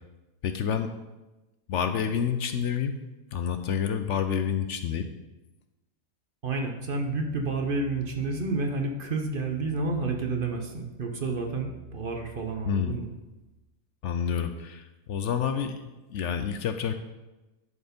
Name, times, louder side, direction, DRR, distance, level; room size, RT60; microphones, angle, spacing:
voice 1, 0.4-0.9 1.7-3.0 3.3-5.1 12.7-12.9 14.0-15.8 16.1-16.9, left 7 dB, 70° left, 8 dB, 0.8 m, -28 dB
voice 2, 6.4-13.1, right 3 dB, 45° right, 3 dB, 0.9 m, -30 dB
11.0 x 4.6 x 5.2 m, 1.1 s
omnidirectional pair, 1.4 m